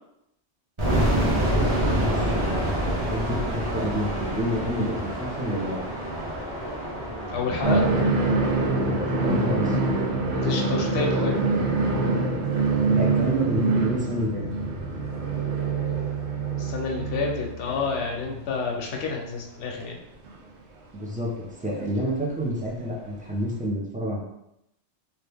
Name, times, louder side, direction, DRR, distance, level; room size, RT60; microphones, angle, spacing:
sound 1, 0.8-11.7, right 1 dB, 30° right, 0.9 m, -28 dB
voice 1, 1.0-5.8 9.0-9.9 12.9-14.4 20.9-24.2, equal, 15° right, -5 dB, 0.3 m, -29 dB
voice 2, 7.3-7.8 10.3-11.4 16.6-20.0, left 4 dB, 75° left, 0 dB, 0.8 m, -29 dB
sound 2, 7.6-18.6 18.9-19.0 20.3-20.4 21.8-21.9 23.4-23.5, right 3 dB, 75° right, 0.8 m, -25 dB
2.8 x 2.4 x 3.4 m, 0.81 s
omnidirectional pair, 1.2 m